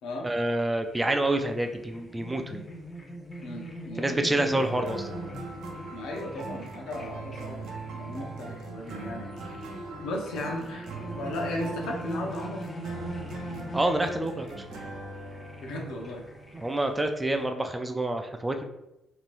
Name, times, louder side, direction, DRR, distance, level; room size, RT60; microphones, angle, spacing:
voice 1, 0.2-2.7 4.0-5.1 13.7-14.6 16.5-18.6, right 1 dB, 15° right, 5 dB, 0.3 m, -27 dB
sound 1, 0.8-17.4, right 1 dB, 30° left, 0.6 m, -42 dB
voice 2, 3.4-4.6 5.9-9.3 10.0-10.9 11.1-12.6 15.6-16.2, left 1 dB, 90° left, 0 dB, 0.7 m, -35 dB
sound 2, 4.6-16.9, right 3 dB, 85° right, 0.6 m, -41 dB
3.2 x 2.8 x 2.5 m, 0.90 s
cardioid pair, 90°, 0 cm